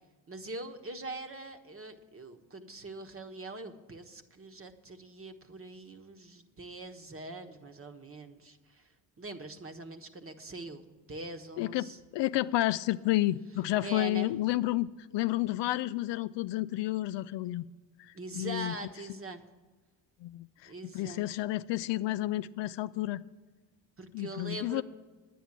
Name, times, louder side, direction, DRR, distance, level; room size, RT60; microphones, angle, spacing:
voice 1, 0.3-8.9 9.2-12.0 13.8-14.3 18.1-19.5 20.6-21.3 24.0-24.8, right 2 dB, 30° right, 1.3 m, -43 dB
voice 2, 11.6-11.9 12.1-17.6 18.0-18.8 20.2-23.2 24.1-24.8, left 16 dB, 70° left, 0.5 m, -31 dB
10.0 x 9.4 x 7.4 m
supercardioid pair, 65°, 45 cm